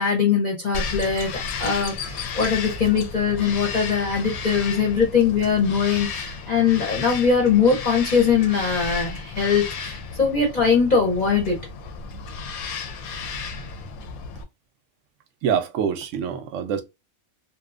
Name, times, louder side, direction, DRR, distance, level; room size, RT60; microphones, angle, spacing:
voice 1, 0.0-1.3 1.6-11.6, left 6 dB, 40° left, 0.7 m, -21 dB
Bird vocalization bird call bird song, 0.7-14.4, left 5 dB, 85° left, 1.0 m, -33 dB
voice 2, 15.4-16.8, right 8 dB, 70° right, 0.8 m, -25 dB
2.8 x 2.1 x 2.4 m
omnidirectional pair, 1.5 m